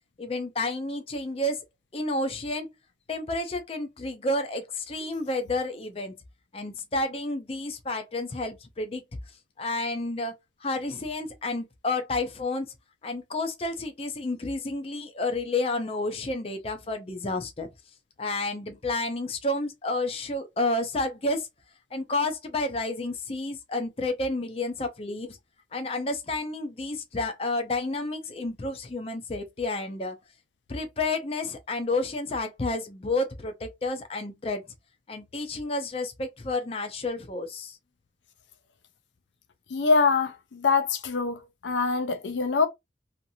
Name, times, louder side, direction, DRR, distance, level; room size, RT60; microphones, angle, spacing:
voice 1, 0.2-1.6 1.9-2.7 3.1-6.1 6.5-9.0 9.6-10.4 10.6-12.7 13.0-17.7 18.2-21.5 21.9-25.4 25.7-30.2 30.7-34.6 35.1-37.8, left 2 dB, 30° left, 0.5 m, -30 dB
voice 2, 39.7-42.7, left 4 dB, 85° left, 0.5 m, -24 dB
2.7 x 2.5 x 2.6 m
head